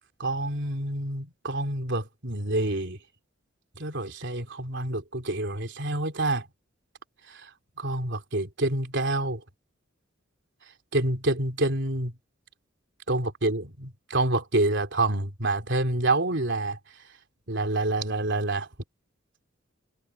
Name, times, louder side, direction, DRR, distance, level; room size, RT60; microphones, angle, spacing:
voice 1, 0.2-3.0 3.8-6.4 7.3-7.4 7.8-9.4 10.9-12.1 13.1-16.8 17.5-18.7, right 2 dB, 60° right, 3.7 m, -27 dB
head